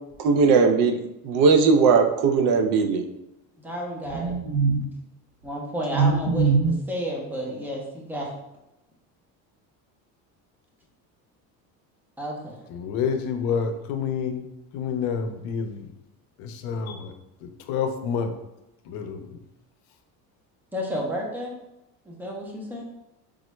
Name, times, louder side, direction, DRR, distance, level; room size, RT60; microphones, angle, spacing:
voice 1, 0.2-1.0 1.2-3.0 4.1-4.8 5.9-6.8, right 5 dB, 80° right, 6 dB, 0.5 m, -19 dB
voice 2, 3.6-4.3 5.4-6.5 6.9-8.3 12.2-12.6 20.7-21.5 22.1-22.8, equal, 5° right, -2 dB, 0.4 m, -31 dB
voice 3, 12.7-14.4 14.7-15.9 16.4-17.1 17.4-18.3 18.9-19.4, left 6 dB, 80° left, 7 dB, 0.5 m, -28 dB
3.5 x 2.1 x 3.0 m, 0.90 s
cardioid pair, 160°, 35 cm